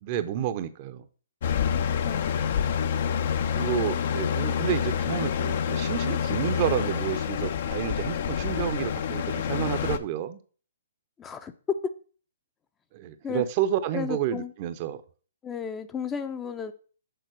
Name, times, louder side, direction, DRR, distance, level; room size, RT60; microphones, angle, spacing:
voice 1, 0.0-1.0 3.5-10.4 12.9-15.0, right 10 dB, 40° right, 0.7 m, -30 dB
sound 1, 1.4-10.0, left 8 dB, 55° left, 0.6 m, -27 dB
voice 2, 11.2-11.9 13.2-13.4 13.9-14.5 15.4-16.7, left 6 dB, 15° left, 0.6 m, -33 dB
6.9 x 4.2 x 6.2 m
hypercardioid pair, 130°, 0 cm